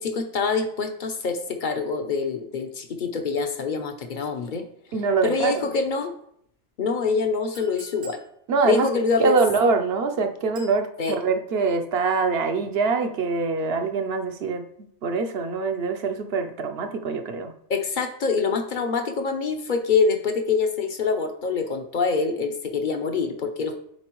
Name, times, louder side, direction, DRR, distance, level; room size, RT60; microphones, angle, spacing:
voice 1, 0.0-4.6 5.2-6.1 6.8-8.2 8.6-9.4 11.0-11.2 17.7-23.8, left 4 dB, 50° left, 6 dB, 0.8 m, -25 dB
voice 2, 4.9-5.5 8.5-8.9 9.2-14.7 15.0-17.5, right 4 dB, 65° right, 6 dB, 0.9 m, -24 dB
Chink clink, 7.5-8.3 10.5-10.8, right 2 dB, 80° right, 2.4 m, -45 dB
9.6 x 4.2 x 3.0 m, 0.69 s
omnidirectional pair, 1.2 m